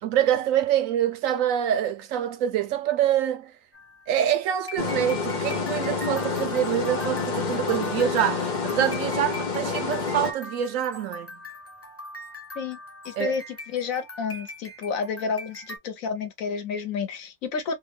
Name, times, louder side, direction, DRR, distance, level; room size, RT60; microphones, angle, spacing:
voice 1, 0.0-3.5 4.1-11.4 13.2-13.3, right 10 dB, 80° right, 1.0 m, -25 dB
sound 1, 3.7-15.8, left 1 dB, 20° left, 0.3 m, -42 dB
sound 2, 4.8-10.3, left 5 dB, 45° left, 0.7 m, -28 dB
voice 2, 13.0-17.7, left 5 dB, 90° left, 1.2 m, -30 dB
3.1 x 2.1 x 3.2 m
omnidirectional pair, 1.4 m